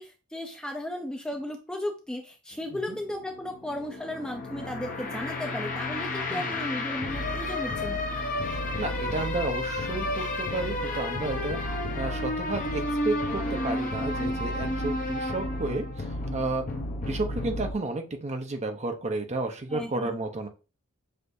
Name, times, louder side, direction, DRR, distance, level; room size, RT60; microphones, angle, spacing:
voice 1, 0.0-8.0 19.7-20.2, left 1 dB, 5° left, 2 dB, 0.5 m, -35 dB
sound 1, 2.5-17.7, left 1 dB, 35° left, 0.7 m, -31 dB
voice 2, 8.8-11.6 12.0-16.7 17.0-20.5, right 2 dB, 30° right, 5 dB, 0.7 m, -32 dB
6.4 x 2.6 x 2.6 m, 0.32 s
head